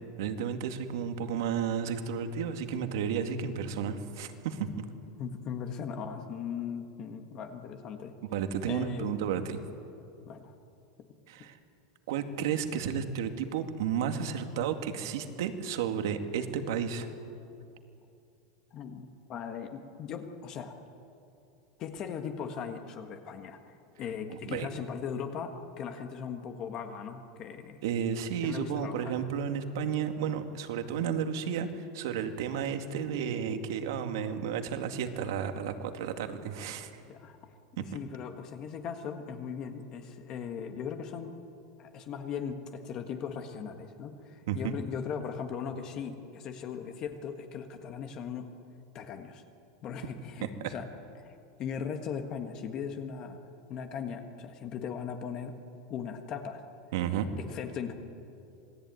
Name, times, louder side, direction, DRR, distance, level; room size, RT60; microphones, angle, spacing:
voice 1, 0.2-4.8 8.3-9.6 11.3-11.6 12.1-17.1 24.3-24.7 27.8-36.9 37.8-37.9 44.5-44.8 50.4-50.7 56.9-57.3, right 7 dB, 65° right, 7 dB, 2.3 m, -32 dB
voice 2, 5.2-8.2 8.7-9.2 10.2-10.5 11.4-11.5 18.7-20.7 21.8-27.8 28.4-29.1 37.1-37.4 37.9-41.4 41.8-48.5 48.9-49.4 49.8-50.9 51.1-53.4 53.7-55.6 55.9-56.6 57.4-57.9, left 7 dB, 30° left, 6 dB, 1.6 m, -38 dB
27.0 x 19.5 x 9.5 m, 2.6 s
supercardioid pair, 170°, 2 cm